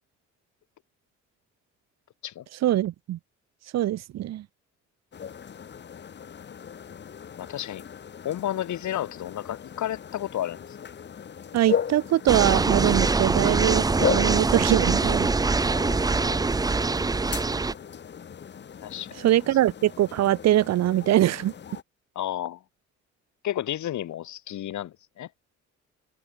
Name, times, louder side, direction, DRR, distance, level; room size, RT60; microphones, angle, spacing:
voice 1, 2.6-3.2 3.7-4.4 11.5-15.3 19.2-21.5, right 13 dB, 60° right, 0.6 m, -23 dB
sound 1, 5.1-21.8, left 7 dB, 35° left, 0.9 m, -36 dB
voice 2, 7.4-7.8 8.2-10.7 15.9-16.0 18.8-19.2 22.2-22.6 23.4-25.3, left 12 dB, 70° left, 2.4 m, -32 dB
sound 2, 12.3-17.7, right 3 dB, 15° right, 0.5 m, -23 dB
cardioid pair, 90°, 30 cm